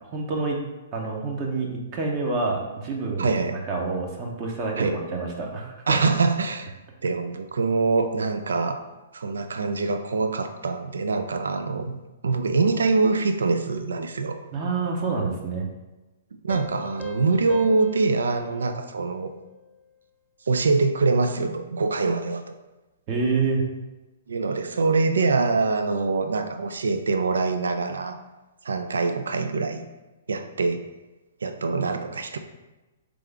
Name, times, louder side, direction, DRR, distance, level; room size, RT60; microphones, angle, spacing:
voice 1, 0.0-0.6 0.9-6.0 14.5-15.7 23.1-23.6, right 4 dB, 35° right, 0 dB, 0.7 m, -27 dB
voice 2, 3.2-3.6 4.8-5.0 5.9-6.7 7.0-8.8 9.1-14.4 16.4-19.3 20.5-22.4 24.3-28.2 28.6-29.8 30.3-30.8 31.4-32.4, right 3 dB, 75° right, 8 dB, 0.3 m, -24 dB
Piano, 16.5-19.8, left 3 dB, 10° left, 0.5 m, -42 dB
3.8 x 3.4 x 3.4 m, 1.1 s
hypercardioid pair, 120°, 0 cm